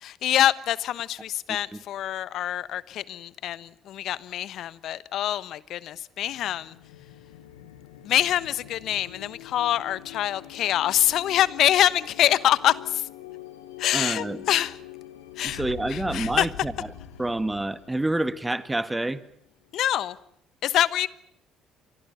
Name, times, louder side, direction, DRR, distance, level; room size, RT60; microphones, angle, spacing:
voice 1, 0.0-6.8 8.0-13.1 13.8-14.8 15.4-15.6 15.9-16.5 19.7-20.2 20.6-21.1, left 12 dB, 60° left, 1.1 m, -25 dB
sound 1, 6.2-19.7, left 10 dB, 85° left, 2.2 m, -44 dB
voice 2, 13.9-14.4 15.4-16.7 17.2-19.2, right 2 dB, 15° right, 1.8 m, -28 dB
30.0 x 25.0 x 5.6 m
hypercardioid pair, 50°, 0 cm